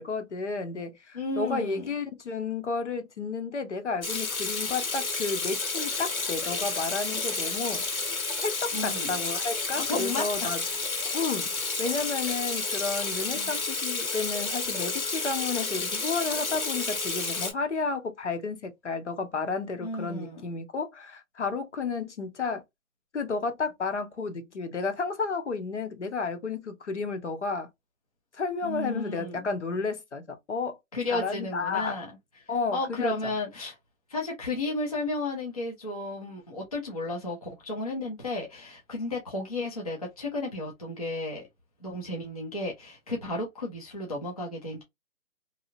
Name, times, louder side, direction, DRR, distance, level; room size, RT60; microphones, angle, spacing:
voice 1, 0.0-7.8 8.4-10.6 11.1-11.5 11.8-22.6 23.1-27.7 28.3-30.8 31.1-32.0 32.5-33.1, left 4 dB, 55° left, 0.9 m, -32 dB
voice 2, 1.1-1.9 8.7-9.2 9.8-10.8 13.3-13.5 19.8-20.6 28.6-29.5 30.9-32.1 32.7-33.8 34.1-41.4 41.8-44.8, left 2 dB, 25° left, 0.6 m, -33 dB
Water tap faucet / Sink (filling or washing), 4.0-17.5, left 3 dB, 80° left, 1.6 m, -31 dB
2.8 x 2.4 x 2.7 m
hypercardioid pair, 165°, 42 cm